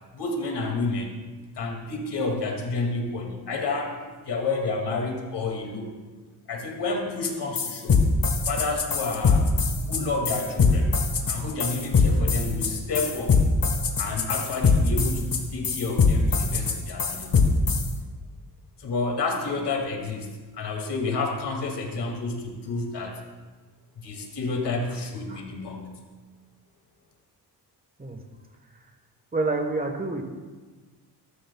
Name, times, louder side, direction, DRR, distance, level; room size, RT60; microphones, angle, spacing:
voice 1, 0.1-1.2 1.6-6.0 6.5-8.0 8.5-10.9 11.3-13.4 14.0-17.5 18.8-23.2 24.0-26.0, left 3 dB, 75° left, 1 dB, 2.4 m, -30 dB
sound 1, 7.2-7.3 7.6-17.9, left 5 dB, 55° left, 1.5 m, -22 dB
voice 2, 29.3-30.2, right 3 dB, 20° right, 4 dB, 1.3 m, -28 dB
20.5 x 13.0 x 2.3 m, 1.4 s
wide cardioid pair, 120°, 41 cm